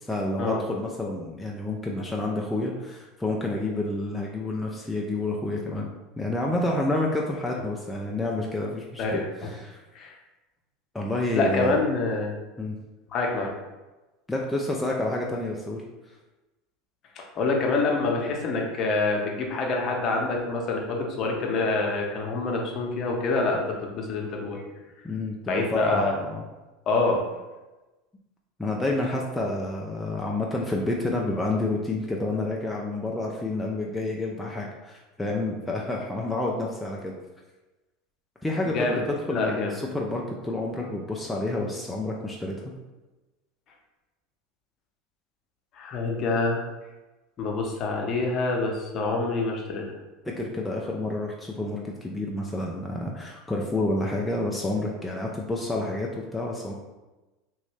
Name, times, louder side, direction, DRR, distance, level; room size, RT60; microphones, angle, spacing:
voice 1, 0.0-5.9 6.2-9.8 10.9-11.8 12.6-12.8 14.3-15.8 25.0-26.4 28.6-37.1 38.4-39.0 39.3-42.6 50.2-56.7, left 2 dB, 10° left, -2 dB, 0.5 m, -29 dB
voice 2, 9.0-9.5 9.9-10.1 11.3-12.3 13.1-13.5 17.3-24.6 25.5-26.1 26.9-27.2 38.7-39.0 39.3-39.7 45.7-46.6 47.4-49.9, left 3 dB, 45° left, 0 dB, 0.8 m, -26 dB
3.0 x 2.7 x 3.2 m, 1.1 s
hypercardioid pair, 90°, 0 cm